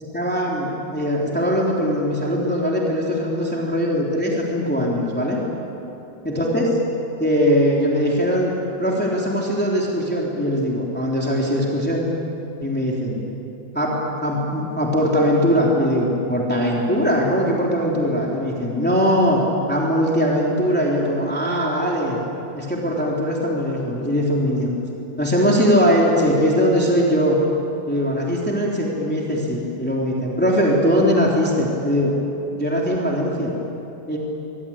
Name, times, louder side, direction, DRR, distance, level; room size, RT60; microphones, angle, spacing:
voice 1, 0.1-5.4 6.2-6.7 7.2-8.5 8.8-12.1 12.6-13.2 13.7-19.4 19.7-22.2 22.5-24.7 25.2-27.4 27.9-32.1 32.5-33.5 34.1-34.2, equal, 5° left, -3 dB, 3.3 m, -21 dB
24.0 x 23.0 x 8.8 m, 3.0 s
omnidirectional pair, 2.0 m